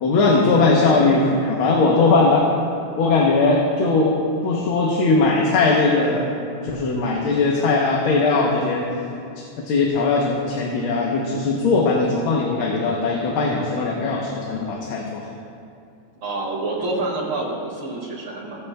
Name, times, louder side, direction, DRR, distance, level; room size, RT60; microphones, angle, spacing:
voice 1, 0.0-2.5 3.0-4.2 4.4-6.3 6.6-8.9 9.6-15.2, left 3 dB, 90° left, -1 dB, 1.8 m, -19 dB
voice 2, 16.2-18.7, right 2 dB, 65° right, -3 dB, 2.7 m, -27 dB
22.0 x 8.0 x 2.3 m, 2.5 s
omnidirectional pair, 2.2 m